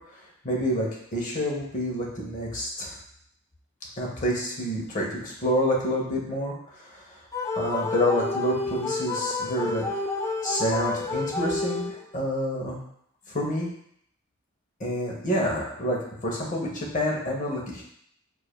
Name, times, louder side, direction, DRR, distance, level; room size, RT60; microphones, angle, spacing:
voice 1, 0.4-2.9 4.0-7.0 7.5-9.8 10.4-12.8 13.3-13.7 14.8-17.8, equal, 35° left, -2 dB, 0.8 m, -28 dB
sound 1, 7.3-12.2, left 3 dB, 15° left, 0.3 m, -30 dB
4.7 x 2.4 x 2.3 m, 0.68 s
head